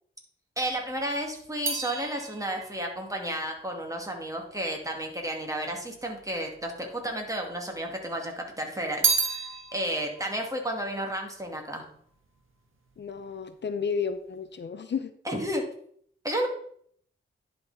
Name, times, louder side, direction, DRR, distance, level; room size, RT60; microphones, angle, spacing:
voice 1, 0.6-11.9 15.3-15.6 16.2-16.5, right 1 dB, 15° right, 1 dB, 2.2 m, -32 dB
sound 1, 0.7-5.1 5.9-6.7 7.0-8.1 8.4-12.0 12.3-12.8, right 5 dB, 70° right, 1.5 m, -33 dB
voice 2, 13.0-15.1, left 6 dB, 55° left, 10 dB, 0.7 m, -32 dB
10.5 x 4.2 x 4.1 m, 0.63 s
cardioid pair, 60°, 21 cm